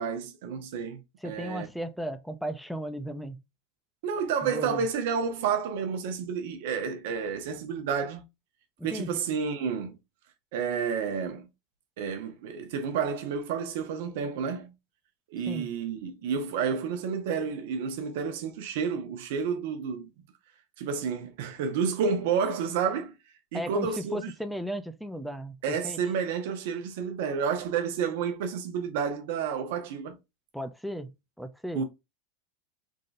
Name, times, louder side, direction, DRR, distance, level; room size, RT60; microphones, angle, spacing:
voice 1, 0.0-1.7 4.0-8.2 8.8-9.9 10.5-11.5 12.0-14.7 15.3-20.1 20.8-23.1 23.5-24.3 25.6-30.2 31.7-31.8, right 6 dB, 70° right, 1.0 m, -30 dB
voice 2, 1.2-3.4 4.4-4.9 8.8-9.2 15.5-15.7 23.5-26.0 30.5-31.8, equal, ahead, 0.5 m, -36 dB
3.7 x 3.7 x 2.6 m
hypercardioid pair, 100°, 0 cm